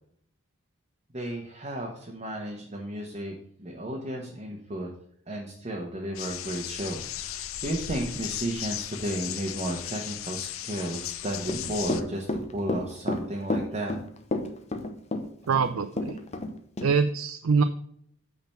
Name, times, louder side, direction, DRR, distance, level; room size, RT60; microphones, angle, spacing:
voice 1, 1.1-4.9 5.3-12.3 12.5-13.9, right 1 dB, 30° right, -1 dB, 1.1 m, -33 dB
sound 1, 6.1-12.0, left 11 dB, 75° left, 0.6 m, -36 dB
Run / Walk footsteps, 11.4-16.5 16.8-16.9, left 2 dB, 30° left, 0.8 m, -30 dB
voice 2, 15.5-16.2 16.8-17.6, right 5 dB, 75° right, 11 dB, 0.4 m, -24 dB
8.8 x 3.9 x 5.7 m, 0.67 s
head